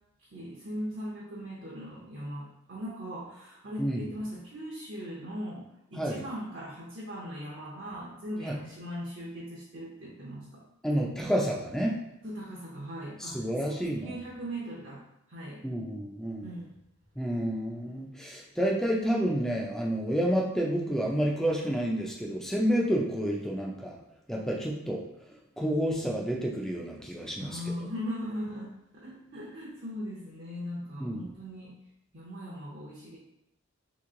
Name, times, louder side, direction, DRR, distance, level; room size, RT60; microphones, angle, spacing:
voice 1, 0.3-10.6 12.2-15.0 15.3-15.6 16.4-16.7 27.4-31.7 32.1-33.2, equal, 60° right, -6 dB, 0.8 m, -39 dB
voice 2, 10.8-12.0 13.2-14.1 15.6-16.6 17.2-24.0 24.3-25.0 25.6-27.6 31.0-31.2, equal, ahead, -1 dB, 0.4 m, -29 dB
3.0 x 2.9 x 3.7 m, 0.82 s
head